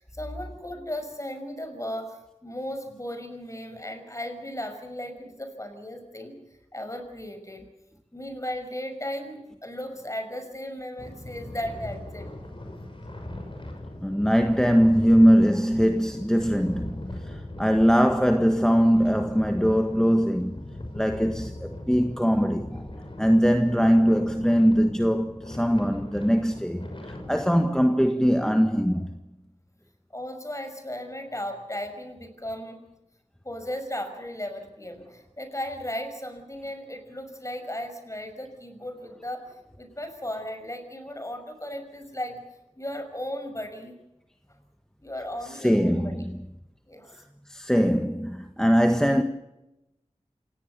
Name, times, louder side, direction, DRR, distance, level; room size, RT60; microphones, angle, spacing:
voice 1, 0.0-6.4 6.7-7.6 8.1-12.3 30.1-32.8 33.4-39.4 39.8-42.4 42.8-44.0 45.0-46.3 46.9-47.2, left 1 dB, 25° left, 6.1 m, -36 dB
sound 1, 11.0-27.4, left 1 dB, 45° left, 6.3 m, -39 dB
voice 2, 14.0-20.6 20.9-22.8 23.2-29.1 45.5-46.4 47.5-49.2, equal, 5° left, 1.6 m, -21 dB
28.0 x 18.0 x 6.9 m
wide cardioid pair, 55°, 12 cm